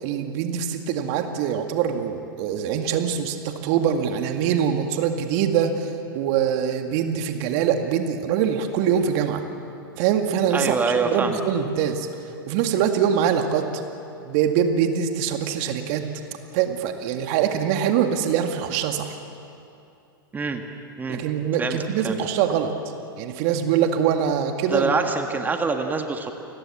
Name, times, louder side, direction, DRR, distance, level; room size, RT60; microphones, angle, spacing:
voice 1, 0.0-5.9 6.1-9.4 10.0-12.1 12.5-13.8 14.3-16.0 16.5-19.2 21.1-22.7 23.2-24.9, right 8 dB, 45° right, 5 dB, 2.1 m, -23 dB
voice 2, 10.5-11.4 20.3-20.6 21.0-21.2 21.6-21.8 22.0-22.2 24.7-26.3, right 4 dB, 15° right, 5 dB, 1.7 m, -25 dB
29.5 x 20.5 x 7.3 m, 2.6 s
figure-of-eight pair, 100°, 12 cm